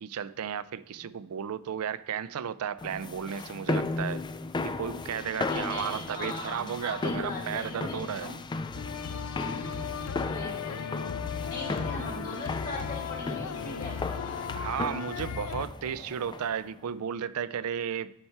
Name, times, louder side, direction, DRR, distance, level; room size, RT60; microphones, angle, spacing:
voice 1, 0.0-4.2 4.6-8.3 14.5-18.1, right 8 dB, 80° right, 0.4 m, -34 dB
sound 1, 2.8-16.7, left 3 dB, 20° left, 0.3 m, -36 dB
voice 2, 5.5-8.4 9.4-10.0 10.3-10.8 11.5-14.5, left 1 dB, 40° left, 2.8 m, -40 dB
sound 2, 8.7-15.7, left 7 dB, 90° left, 0.5 m, -36 dB
9.0 x 4.2 x 4.5 m
head